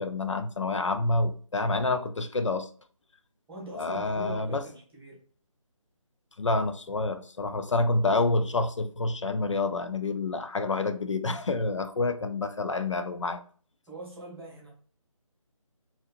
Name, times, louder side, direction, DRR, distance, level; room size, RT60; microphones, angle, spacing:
voice 1, 0.0-2.7 3.7-4.6 6.4-13.4, left 3 dB, 60° left, 0.4 m, -28 dB
voice 2, 3.5-5.2 13.9-14.7, right 1 dB, ahead, 0.7 m, -42 dB
3.9 x 2.8 x 2.4 m
figure-of-eight pair, 180°, 18 cm